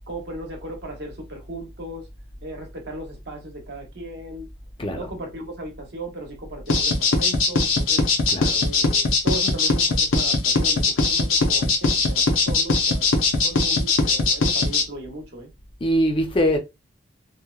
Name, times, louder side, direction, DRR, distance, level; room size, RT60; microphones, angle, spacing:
voice 1, 0.1-2.1 2.4-4.5 4.9-8.1 8.5-13.1 13.4-15.5, right 1 dB, 55° right, 0.8 m, -37 dB
voice 2, 4.8-5.1 8.3-8.6 15.8-16.6, equal, 25° left, 0.4 m, -22 dB
sound 1, 6.7-14.8, left 3 dB, 80° left, 0.6 m, -20 dB
2.8 x 2.1 x 2.2 m
head